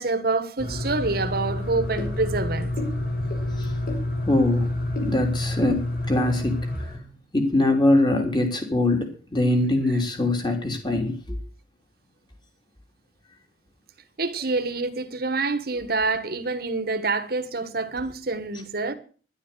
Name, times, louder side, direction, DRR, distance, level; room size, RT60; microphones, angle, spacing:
voice 1, 0.0-2.7 14.2-18.9, right 3 dB, 55° right, 1.5 m, -26 dB
sound 1, 0.6-7.0, left 1 dB, 50° left, 5.0 m, -28 dB
voice 2, 3.4-3.8 4.2-4.7 5.0-6.9 7.3-11.4, left 2 dB, 25° left, 3.2 m, -23 dB
11.5 x 9.9 x 8.2 m
head